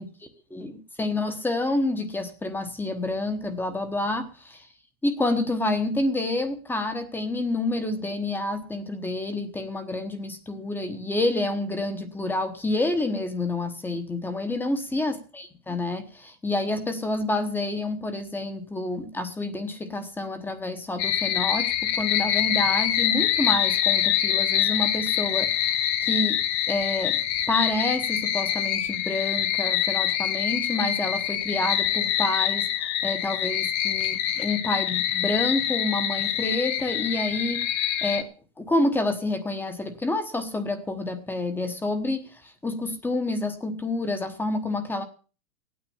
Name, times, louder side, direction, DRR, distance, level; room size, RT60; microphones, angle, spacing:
voice 1, 0.5-4.7 5.0-26.4 26.7-27.2 27.5-37.7 38.0-38.3 38.6-45.0, left 2 dB, 5° left, 9 dB, 1.1 m, -28 dB
sound 1, 21.0-38.2, left 11 dB, 25° left, 0.8 m, -25 dB
15.5 x 9.4 x 7.1 m, 0.37 s
hypercardioid pair, 155°, 43 cm